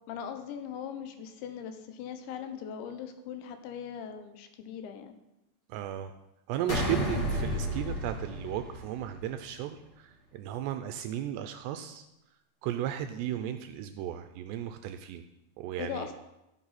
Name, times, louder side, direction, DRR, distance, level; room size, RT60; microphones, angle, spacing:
voice 1, 0.0-5.2 7.0-7.2 15.8-16.1, left 8 dB, 80° left, 7 dB, 3.1 m, -40 dB
voice 2, 5.7-6.1 6.5-12.1 12.6-15.2 15.6-16.1, right 11 dB, 85° right, 8 dB, 2.5 m, -35 dB
sound 1, 6.7-9.3, equal, 35° left, 3.1 m, -32 dB
12.5 x 10.5 x 4.2 m, 0.92 s
omnidirectional pair, 5.3 m